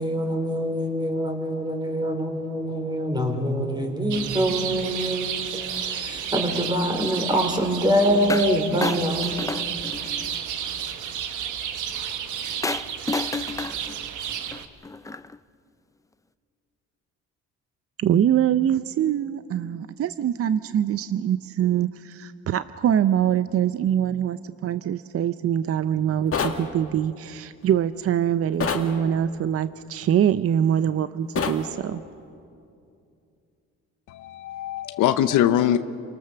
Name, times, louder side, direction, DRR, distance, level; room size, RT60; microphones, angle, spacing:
voice 1, 0.0-9.3, equal, 15° right, 3 dB, 3.9 m, -25 dB
sound 1, 4.1-14.7, right 8 dB, 75° right, 1.3 m, -31 dB
sound 2, 8.3-8.5 8.8-10.3 12.6-15.4, left 3 dB, 10° left, 0.5 m, -31 dB
voice 2, 18.0-32.0, right 9 dB, 50° right, 13 dB, 0.6 m, -24 dB
sound 3, 26.3-26.6 28.6-28.9 31.4-31.6, left 6 dB, 45° left, 1.9 m, -25 dB
voice 3, 34.1-35.8, left 11 dB, 85° left, 10 dB, 0.7 m, -22 dB
28.0 x 18.5 x 6.8 m, 2.5 s
cardioid pair, 90°, 30 cm